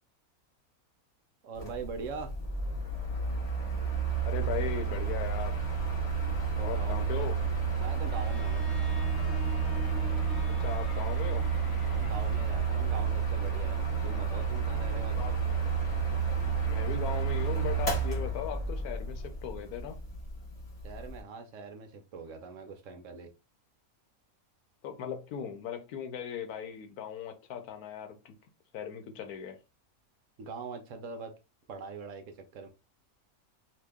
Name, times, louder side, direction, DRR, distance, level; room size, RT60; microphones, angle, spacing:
voice 1, 1.4-2.3 6.5-7.3 7.7-8.6 11.8-15.4 20.8-23.3 30.4-31.3 31.7-32.7, right 4 dB, 65° right, 1.0 m, -42 dB
Mechanical fan, 1.6-21.2, right 5 dB, 25° left, 1.1 m, -31 dB
voice 2, 4.2-5.6 6.6-7.4 10.6-11.5 15.2-15.3 16.7-20.0 24.8-28.4 28.7-29.6, left 8 dB, 85° left, 1.2 m, -38 dB
sound 1, 8.1-12.1, left 3 dB, 55° left, 0.9 m, -47 dB
Bowed string instrument, 8.1-12.9, left 2 dB, ahead, 0.3 m, -49 dB
2.8 x 2.6 x 3.4 m
omnidirectional pair, 1.6 m